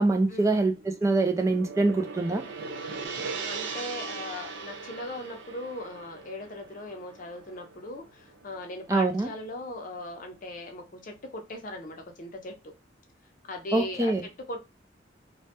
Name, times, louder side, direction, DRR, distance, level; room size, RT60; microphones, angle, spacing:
voice 1, 0.0-2.4 8.9-9.3 13.7-14.2, right 2 dB, 15° right, 0.3 m, -24 dB
Gong, 0.7-9.0, right 4 dB, 85° right, 0.5 m, -39 dB
voice 2, 3.4-12.7 13.5-14.6, left 1 dB, 45° left, 0.5 m, -39 dB
2.1 x 2.1 x 2.8 m
head